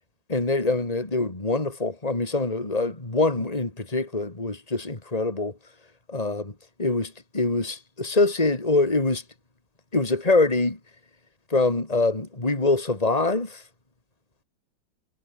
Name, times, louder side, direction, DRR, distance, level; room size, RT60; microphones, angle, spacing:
voice 1, 0.3-5.6 6.1-6.5 6.8-9.2 9.9-10.8 11.5-13.6, left 3 dB, 20° left, 3.4 m, -24 dB
omnidirectional pair, 2.0 m